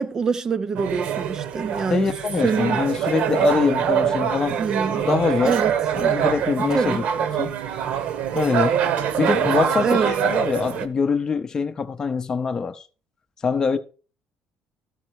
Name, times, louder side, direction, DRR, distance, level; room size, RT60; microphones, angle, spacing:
voice 1, 0.0-2.1 2.4-2.8 4.6-5.0 5.4-5.7 6.7-7.0 9.8-10.1, right 5 dB, 25° right, 0.4 m, -24 dB
sound 1, 0.7-10.9, right 9 dB, 60° right, 1.0 m, -24 dB
voice 2, 1.9-5.6 5.9-7.0 7.4-7.5 8.3-8.8 9.2-12.8 13.4-13.8, left 5 dB, 25° left, 0.6 m, -24 dB
13.0 x 5.4 x 4.6 m
cardioid pair, 165°, 3 cm